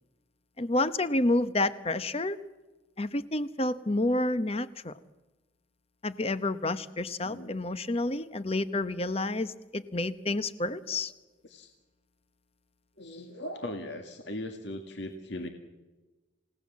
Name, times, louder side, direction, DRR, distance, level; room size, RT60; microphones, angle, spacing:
voice 1, 0.6-2.4 3.0-4.9 6.0-11.1, left 2 dB, 30° left, 14 dB, 0.9 m, -29 dB
voice 2, 7.2-7.5 8.5-8.6 11.4-11.7 13.0-15.5, left 1 dB, 55° left, 5 dB, 2.0 m, -39 dB
28.5 x 17.5 x 7.4 m, 1.2 s
head